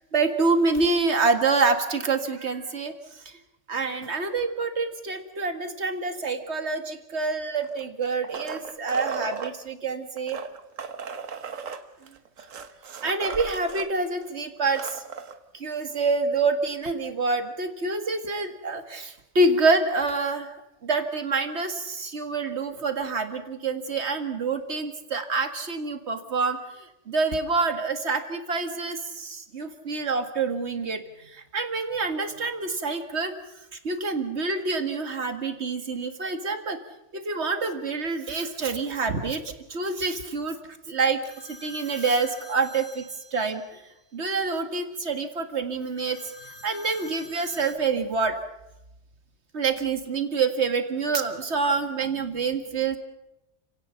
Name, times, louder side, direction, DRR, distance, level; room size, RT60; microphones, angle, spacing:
voice 1, 0.1-2.9 3.7-10.4 13.0-15.0 15.5-20.5 20.8-33.3 33.8-36.8 37.1-39.4 39.7-40.6 40.9-41.2 41.5-43.0 43.3-43.8 44.1-46.2 46.4-48.4 49.5-53.0, right 4 dB, 55° right, 6 dB, 2.1 m, -27 dB
sound 1, 7.6-9.5 10.2-13.9 14.2-14.3 14.6-15.4 16.9-17.0, right 6 dB, 75° right, 1.6 m, -36 dB
sound 2, 41.2-43.8 46.0-47.8, left 1 dB, 20° left, 2.7 m, -47 dB
30.0 x 17.5 x 5.7 m, 0.89 s
omnidirectional pair, 1.4 m